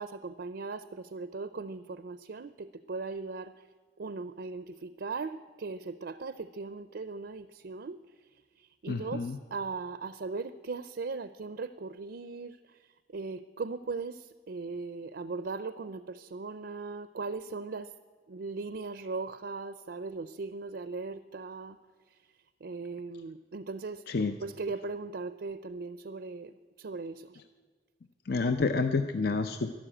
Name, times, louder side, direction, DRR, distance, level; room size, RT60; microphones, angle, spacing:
voice 1, 0.0-3.7 4.0-8.0 8.6-17.9 18.3-21.8 22.1-22.2 22.6-24.0 24.4-27.4, right 4 dB, 65° right, 13 dB, 0.5 m, -39 dB
voice 2, 8.9-9.4 24.1-24.3 28.3-29.7, left 4 dB, 60° left, 8 dB, 0.6 m, -29 dB
13.0 x 11.5 x 8.8 m, 1.5 s
head